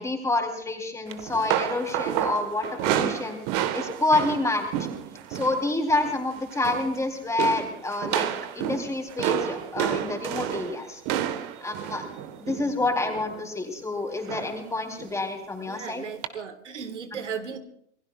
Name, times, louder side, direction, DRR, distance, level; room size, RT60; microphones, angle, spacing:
voice 1, 0.0-3.4 3.7-4.7 5.3-8.3 8.5-11.0 11.6-12.0 12.4-16.0, left 2 dB, 10° left, 2 dB, 3.6 m, -28 dB
sound 1, 1.1-5.6 5.9-6.2 6.5-7.0 7.4-13.4 14.3-14.6 15.0-15.2 16.2-16.3, right 11 dB, 45° right, 1.5 m, -30 dB
voice 2, 11.3-11.6 15.7-17.6, right 7 dB, 75° right, 8 dB, 1.8 m, -36 dB
27.5 x 20.0 x 2.4 m, 0.69 s
figure-of-eight pair, 100°, 36 cm